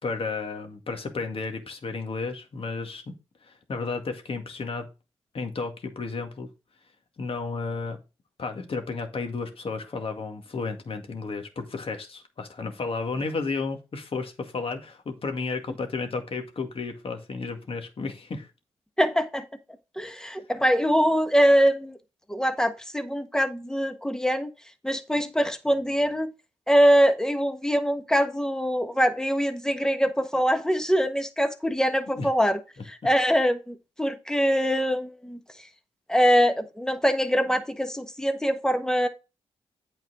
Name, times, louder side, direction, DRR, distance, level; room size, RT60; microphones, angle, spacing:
voice 1, 0.0-3.1 3.4-4.9 5.3-6.5 7.2-8.0 8.4-18.5 20.0-20.3 32.2-32.3, left 4 dB, 50° left, 2.0 m, -33 dB
voice 2, 19.0-19.4 20.0-22.0 22.3-24.5 24.8-26.3 26.7-35.4 36.1-39.1, equal, 5° left, 1.3 m, -23 dB
8.8 x 4.5 x 4.8 m
cardioid pair, 70°, 12 cm